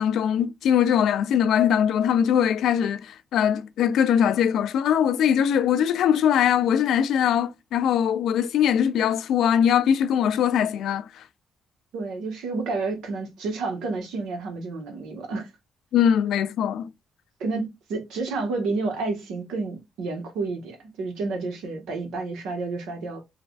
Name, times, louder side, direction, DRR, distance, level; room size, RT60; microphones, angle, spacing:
voice 1, 0.0-11.1 15.9-16.9, left 9 dB, 75° left, 0.3 m, -21 dB
voice 2, 11.9-15.5 17.4-23.2, right 3 dB, 85° right, 1.1 m, -30 dB
3.3 x 2.3 x 2.3 m
cardioid pair, 90°, 0 cm